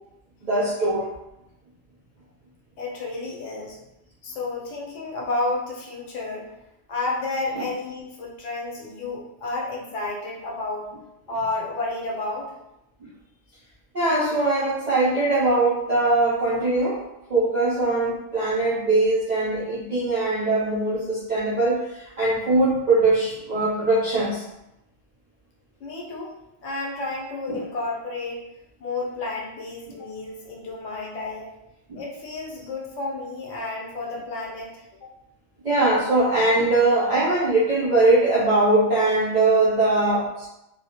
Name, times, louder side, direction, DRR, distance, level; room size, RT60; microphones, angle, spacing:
voice 1, 0.4-1.1 7.5-7.6 11.4-11.5 13.9-17.0 17.3-24.4 27.5-27.6 29.9-30.0 31.9-32.0 35.6-40.5, right 2 dB, 55° right, -9 dB, 0.4 m, -21 dB
voice 2, 2.8-3.8 4.2-6.5 6.9-10.9 11.3-12.5 25.8-26.3 26.6-28.4 28.8-31.5 31.9-35.1, left 2 dB, 70° left, -3 dB, 0.9 m, -31 dB
2.3 x 2.1 x 2.8 m, 0.89 s
omnidirectional pair, 1.3 m